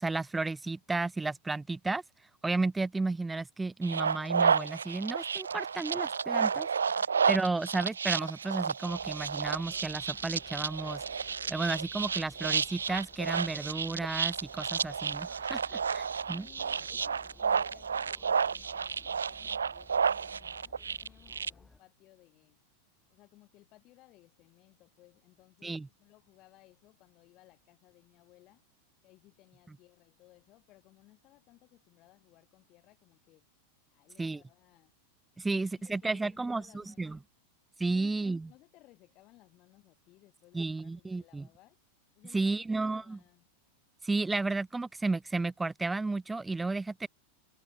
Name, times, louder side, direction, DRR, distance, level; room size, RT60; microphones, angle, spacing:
voice 1, 0.0-2.0 2.4-6.7 7.3-11.0 11.5-16.5 25.6-25.9 34.2-34.4 35.4-37.2 37.8-38.5 40.5-41.4 42.3-43.2 44.0-47.1, right 3 dB, 10° right, 0.4 m, -33 dB
sound 1, 3.8-21.5, right 6 dB, 70° right, 0.4 m, -31 dB
sound 2, 8.9-21.8, left 3 dB, 10° left, 2.2 m, -57 dB
voice 2, 16.3-22.6 23.1-28.6 29.0-33.4 33.9-34.9 35.5-37.2 37.9-41.8 42.1-43.5, left 18 dB, 40° left, 4.1 m, -61 dB
figure-of-eight pair, 90°, 0 cm